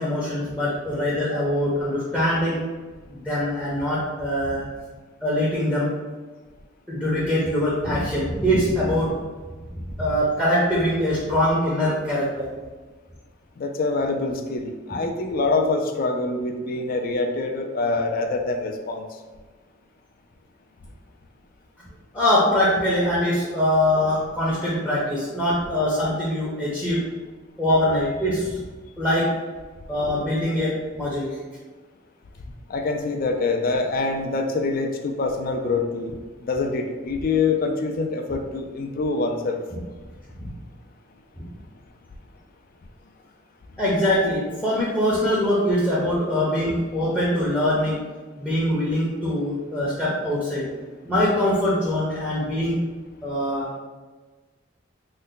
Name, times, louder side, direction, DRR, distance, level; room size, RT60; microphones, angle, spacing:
voice 1, 0.0-2.7 3.1-4.6 5.2-5.9 6.9-9.1 9.8-12.5 22.1-27.0 27.6-28.6 29.0-29.3 29.9-31.4 39.7-39.8 40.4-40.5 43.8-48.0 48.4-50.7 51.0-52.8 53.2-53.7, left 1 dB, 5° left, -7 dB, 0.6 m, -23 dB
voice 2, 13.6-19.1 32.7-36.2 36.4-39.6, left 3 dB, 45° left, 5 dB, 0.3 m, -25 dB
3.2 x 2.1 x 3.8 m, 1.3 s
head